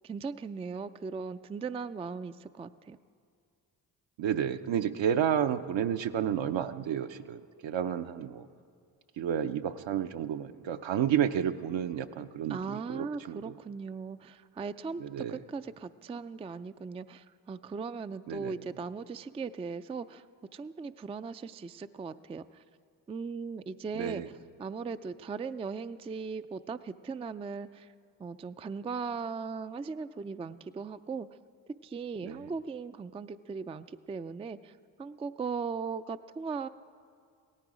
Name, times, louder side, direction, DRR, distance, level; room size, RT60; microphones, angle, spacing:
voice 1, 0.0-3.0 12.5-20.2 20.5-22.4 23.1-24.2 24.6-27.9 28.2-31.3 31.8-34.7 35.0-36.7, right 5 dB, 15° right, 12 dB, 0.3 m, -38 dB
voice 2, 4.2-8.5 9.2-13.6 15.0-15.4 18.3-18.6 23.9-24.3 32.2-32.5, right 9 dB, 65° right, 9 dB, 0.7 m, -31 dB
17.5 x 13.5 x 5.0 m, 2.2 s
supercardioid pair, 45°, 49 cm